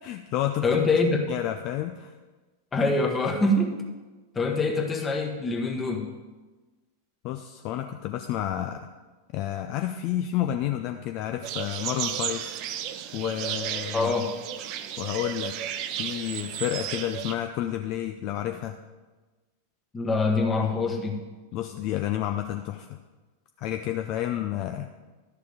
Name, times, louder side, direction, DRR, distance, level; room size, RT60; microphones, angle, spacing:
voice 1, 0.0-0.7 1.3-2.2 7.2-8.9 9.3-12.6 13.1-14.1 15.0-15.6 16.0-18.8 20.6-21.1 21.5-23.0 23.6-24.9, left 12 dB, 40° left, 6 dB, 0.5 m, -30 dB
voice 2, 0.6-1.3 2.7-3.8 4.3-6.1 13.9-14.3 19.9-21.2, left 3 dB, 15° left, 3 dB, 1.4 m, -24 dB
sound 1, 11.4-17.4, right 10 dB, 40° right, 0.5 m, -33 dB
11.5 x 6.8 x 5.0 m, 1.3 s
figure-of-eight pair, 90°, 0 cm